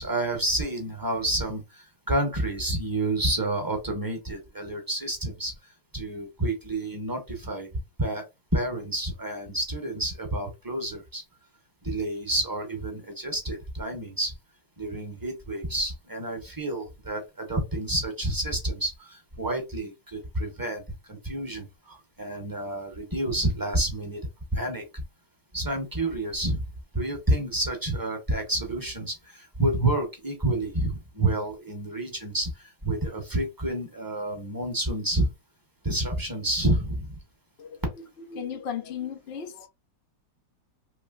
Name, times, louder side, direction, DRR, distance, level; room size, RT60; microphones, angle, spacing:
voice 1, 0.0-5.5 5.9-7.7 8.0-8.2 8.5-11.2 11.8-14.3 14.8-20.8 21.1-24.2 24.5-25.0 25.5-26.6 26.9-35.3 35.8-37.2, right 1 dB, 20° right, 0.7 m, -29 dB
voice 2, 37.6-39.7, left 7 dB, 75° left, 0.5 m, -36 dB
3.1 x 3.0 x 2.3 m
omnidirectional pair, 2.0 m